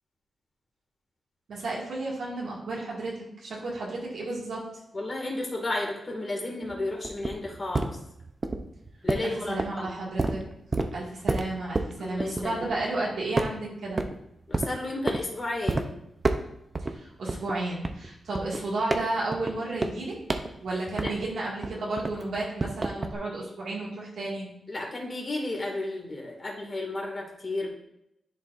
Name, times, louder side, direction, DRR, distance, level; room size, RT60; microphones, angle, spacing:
voice 1, 1.5-4.6 9.2-10.4 10.9-14.0 16.8-24.5, right 2 dB, 80° right, -5 dB, 2.1 m, -33 dB
voice 2, 4.9-8.0 9.0-9.9 12.0-12.8 14.5-15.9 21.0-21.1 24.7-27.7, left 2 dB, 40° left, -1 dB, 2.2 m, -33 dB
sound 1, 6.6-13.0 13.4-14.2 14.5-15.2 15.7-15.9 16.2-16.9 17.3-21.4 21.6-23.1, right 2 dB, 35° right, 0.7 m, -30 dB
10.5 x 4.2 x 2.6 m, 0.78 s
cardioid pair, 60°, 0 cm